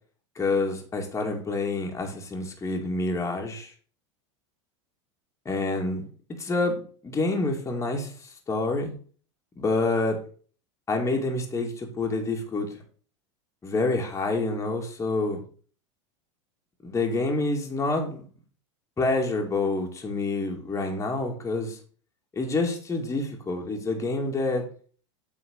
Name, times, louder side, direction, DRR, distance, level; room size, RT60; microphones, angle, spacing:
voice 1, 0.4-3.7 5.5-6.0 6.4-8.9 9.6-10.2 10.9-12.7 13.6-15.4 16.8-18.2 19.0-21.8 22.4-24.6, left 3 dB, 20° left, 1 dB, 2.2 m, -27 dB
8.3 x 4.5 x 6.4 m, 0.42 s
supercardioid pair, 115°, 15 cm